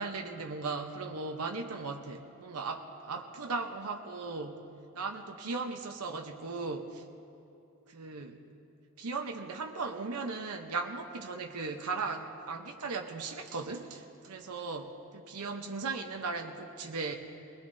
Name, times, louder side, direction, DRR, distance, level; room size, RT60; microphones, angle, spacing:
voice 1, 0.0-4.6 4.9-7.0 7.9-8.4 9.0-17.1, right 4 dB, 90° right, 3 dB, 0.9 m, -37 dB
21.5 x 20.5 x 2.7 m, 2.7 s
head